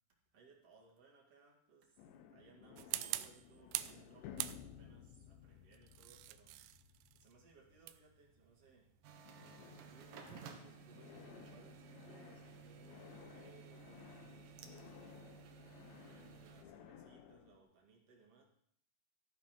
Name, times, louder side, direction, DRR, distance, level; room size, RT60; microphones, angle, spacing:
voice 1, 0.3-2.0 2.3-8.9 9.4-15.6 15.9-18.4, right 4 dB, 45° right, -1 dB, 2.4 m, -65 dB
sound 1, 2.0-8.9 9.2-17.6, left 9 dB, 85° left, 3.4 m, -57 dB
sound 2, 2.8-4.0 4.4-5.0 5.7-10.5, right 15 dB, 85° right, 2.3 m, -45 dB
sound 3, 9.0-16.6, right 6 dB, 70° right, 2.4 m, -56 dB
14.5 x 9.9 x 4.5 m, 0.66 s
omnidirectional pair, 5.1 m